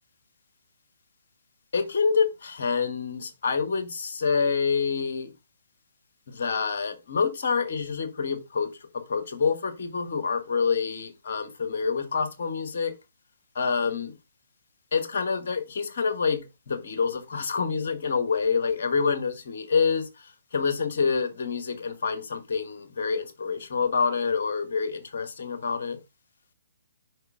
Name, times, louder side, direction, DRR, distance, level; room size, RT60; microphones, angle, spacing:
voice 1, 1.7-5.3 6.3-8.7 8.9-12.9 13.5-14.1 14.9-26.0, left 5 dB, 55° left, 1.4 m, -27 dB
12.0 x 5.0 x 2.4 m
figure-of-eight pair, 130°, 0 cm